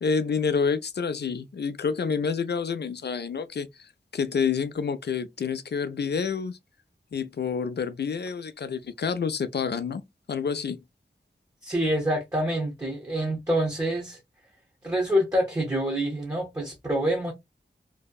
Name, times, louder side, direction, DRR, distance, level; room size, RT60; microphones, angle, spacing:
voice 1, 0.0-6.6 7.1-10.0 10.3-10.8, left 6 dB, 65° left, 0.4 m, -28 dB
voice 2, 11.6-14.2 14.8-17.3, equal, 20° right, 0.7 m, -26 dB
2.7 x 2.1 x 2.2 m
wide cardioid pair, 65°, 19 cm